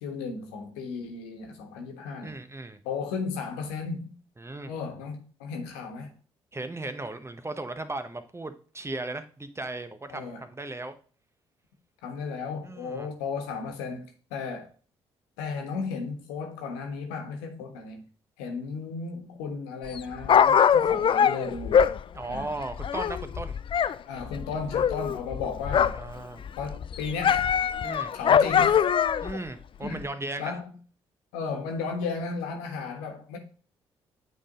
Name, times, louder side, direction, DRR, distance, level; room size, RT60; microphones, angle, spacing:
voice 1, 0.0-2.3 2.8-4.1 4.7-6.1 10.1-10.4 12.0-14.7 15.4-18.0 18.4-21.9 22.3-22.5 24.0-26.0 26.6-27.5 28.1-28.8 29.8-30.1 30.4-30.7 31.3-33.4, left 5 dB, 80° left, 1.3 m, -34 dB
voice 2, 2.2-2.8 4.4-4.7 6.5-10.9 12.6-13.1 22.1-23.6 25.9-26.5 27.8-28.1 29.2-30.6, right 2 dB, 20° right, 1.0 m, -36 dB
Dog, 19.9-24.0 24.2-26.1 26.4-29.4 30.0-30.1, left 8 dB, 40° left, 0.4 m, -23 dB
8.8 x 3.6 x 3.7 m
hypercardioid pair, 45°, 13 cm